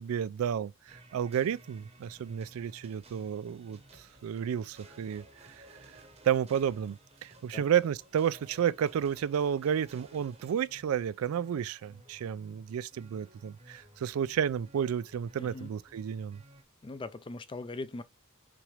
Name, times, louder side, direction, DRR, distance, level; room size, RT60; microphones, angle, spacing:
voice 1, 0.0-5.6 6.2-16.4, right 8 dB, 75° right, 0.3 m, -31 dB
sound 1, 0.9-16.6, right 1 dB, 30° right, 0.8 m, -56 dB
voice 2, 15.4-15.7 16.8-18.0, left 2 dB, 25° left, 0.4 m, -40 dB
6.0 x 2.5 x 3.1 m
head